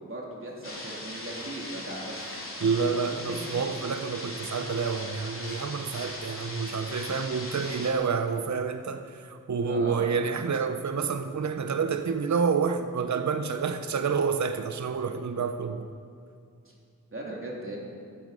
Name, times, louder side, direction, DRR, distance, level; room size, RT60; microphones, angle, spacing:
voice 1, 0.0-2.9 9.6-10.1 16.6-16.7 17.1-17.8, right 1 dB, 40° right, -3 dB, 3.4 m, -38 dB
sound 1, 0.6-7.9, left 1 dB, 40° left, 3.0 m, -39 dB
voice 2, 2.6-15.9, right 5 dB, 55° right, 7 dB, 0.7 m, -28 dB
14.5 x 12.5 x 5.2 m, 2.3 s
wide cardioid pair, 95°, 33 cm